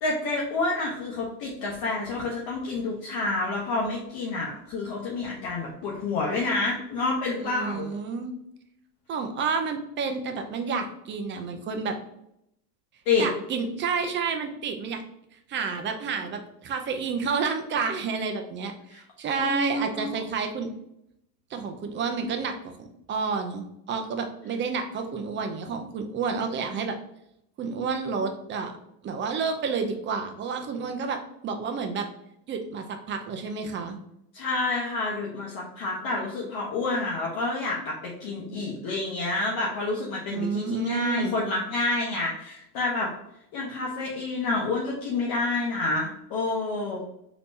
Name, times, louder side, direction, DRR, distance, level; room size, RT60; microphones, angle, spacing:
voice 1, 0.0-7.9 13.1-13.3 18.9-19.0 19.4-20.2 34.3-43.1 43.5-47.0, left 3 dB, 45° left, -3 dB, 0.9 m, -28 dB
voice 2, 7.4-8.4 9.1-12.0 13.2-15.0 15.5-20.7 21.5-27.0 27.6-28.7 29.0-32.1 32.5-34.0 40.3-41.4, right 5 dB, 25° right, 5 dB, 0.4 m, -30 dB
3.4 x 2.9 x 2.6 m, 0.78 s
hypercardioid pair, 95°, 49 cm